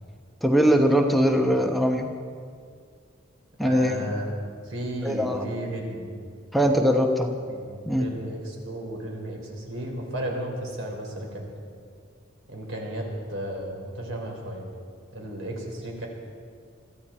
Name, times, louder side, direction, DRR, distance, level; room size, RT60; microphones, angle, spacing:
voice 1, 0.4-2.1 3.6-4.1 5.0-5.5 6.5-7.4 7.9-8.1, equal, ahead, 2 dB, 0.9 m, -21 dB
voice 2, 3.6-6.1 7.5-11.5 12.5-14.6 15.1-16.1, right 1 dB, 85° right, 0 dB, 3.9 m, -34 dB
22.5 x 14.0 x 4.4 m, 2.1 s
head